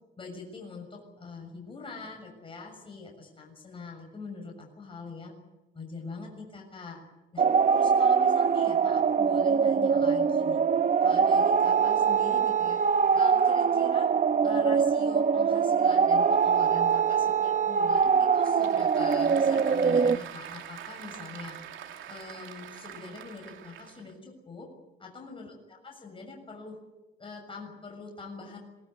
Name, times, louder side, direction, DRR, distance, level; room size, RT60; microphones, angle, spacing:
voice 1, 0.2-5.3 5.7-7.0 7.3-7.4 7.7-10.6 11.0-12.8 13.1-14.1 14.4-21.6 22.1-24.7 25.0-26.8 27.2-28.6, left 4 dB, 25° left, 1 dB, 6.8 m, -43 dB
sound 1, 7.4-20.2, right 6 dB, 40° right, 1.0 m, -23 dB
Applause / Crowd, 18.0-24.1, right 10 dB, 80° right, 2.8 m, -44 dB
23.0 x 20.0 x 9.7 m, 1.0 s
cardioid pair, 90°, 20 cm